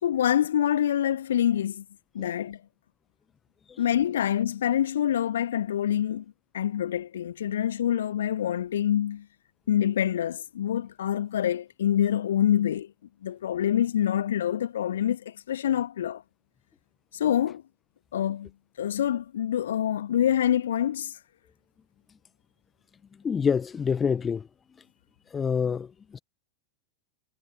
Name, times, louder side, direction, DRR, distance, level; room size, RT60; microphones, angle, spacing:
voice 1, 0.0-1.8 2.1-2.6 3.8-6.2 6.5-9.2 9.7-12.9 13.2-16.2 17.1-17.6 18.1-18.5 18.8-21.1, left 10 dB, 60° left, 1.7 m, -26 dB
voice 2, 23.2-24.5 25.3-26.2, left 6 dB, 20° left, 1.2 m, -27 dB
figure-of-eight pair, 90°, 0 cm